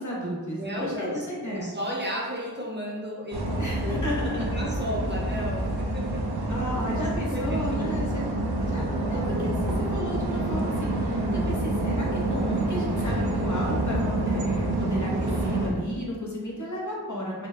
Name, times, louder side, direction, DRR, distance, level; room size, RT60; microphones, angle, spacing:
voice 1, 0.0-1.7 3.6-4.6 6.5-8.2 8.6-17.5, equal, 50° left, -4 dB, 1.1 m, -33 dB
voice 2, 0.5-6.2 6.5-8.2, equal, 30° right, -3 dB, 0.8 m, -34 dB
sound 1, 3.3-15.7, right 1 dB, 85° right, 0.6 m, -27 dB
4.0 x 2.2 x 3.2 m, 1.5 s
wide cardioid pair, 50°, 38 cm